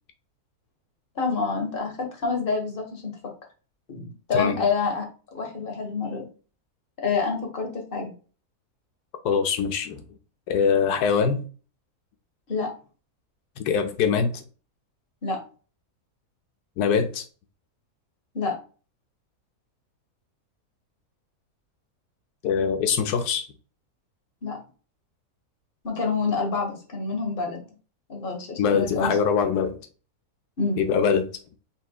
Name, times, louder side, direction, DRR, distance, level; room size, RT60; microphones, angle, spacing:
voice 1, 1.1-3.2 3.9-5.1 5.3-6.3 7.0-8.1 12.5-12.7 15.2-15.4 18.3-18.6 24.4-24.6 25.8-27.6 28.1-29.2 30.6-30.8, left 4 dB, 40° left, 1.3 m, -27 dB
voice 2, 4.3-4.7 9.2-10.0 10.5-11.4 13.6-14.4 16.8-17.2 22.4-23.5 28.6-29.8 30.8-31.3, left 6 dB, 85° left, 1.1 m, -23 dB
5.8 x 3.3 x 2.2 m
omnidirectional pair, 1.6 m